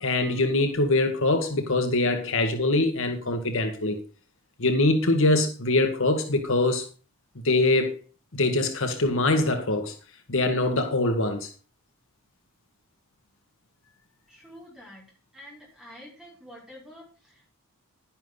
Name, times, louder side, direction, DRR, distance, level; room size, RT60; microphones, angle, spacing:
voice 1, 0.0-4.0 4.6-6.8 7.4-7.9 8.3-9.9 10.3-11.5, left 2 dB, 60° left, 1.6 m, -23 dB
voice 2, 14.3-15.0 15.3-17.5, equal, 5° right, 5.9 m, -48 dB
11.5 x 10.5 x 4.0 m
head